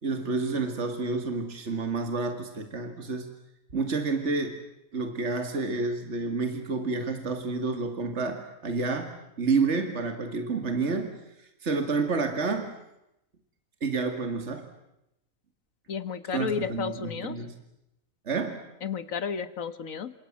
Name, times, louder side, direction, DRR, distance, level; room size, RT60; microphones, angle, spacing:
voice 1, 0.0-3.3 3.7-4.6 4.9-11.1 11.6-12.7 13.8-14.7 16.3-17.6 18.3-18.7, right 4 dB, 55° right, 6 dB, 2.5 m, -29 dB
voice 2, 15.9-17.4 18.8-20.1, left 6 dB, 75° left, 13 dB, 1.8 m, -32 dB
29.5 x 26.5 x 7.4 m, 0.85 s
omnidirectional pair, 1.4 m